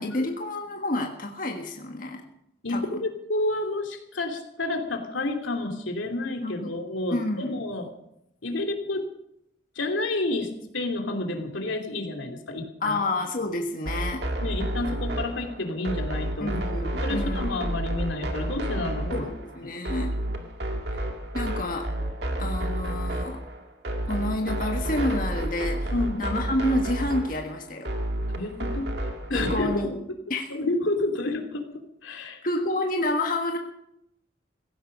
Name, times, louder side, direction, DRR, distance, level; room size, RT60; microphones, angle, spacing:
voice 1, 0.0-2.2 2.7-2.8 6.4-6.8 7.1-7.6 12.8-14.2 16.4-17.6 19.1-20.1 20.9-21.0 21.3-21.9 22.4-23.4 24.0-25.9 26.2-27.9 29.3-29.9 30.3-30.5 32.4-33.6, left 1 dB, 45° left, 2 dB, 1.6 m, -29 dB
voice 2, 2.6-7.9 8.4-9.1 9.7-13.0 14.4-16.6 17.0-19.3 19.6-19.7 25.9-26.2 28.3-28.9 29.3-30.1 30.5-32.5, left 2 dB, 85° left, 4 dB, 2.9 m, -30 dB
sound 1, 13.8-29.8, right 1 dB, 60° right, 2.1 m, -30 dB
16.5 x 16.0 x 5.4 m, 0.78 s
head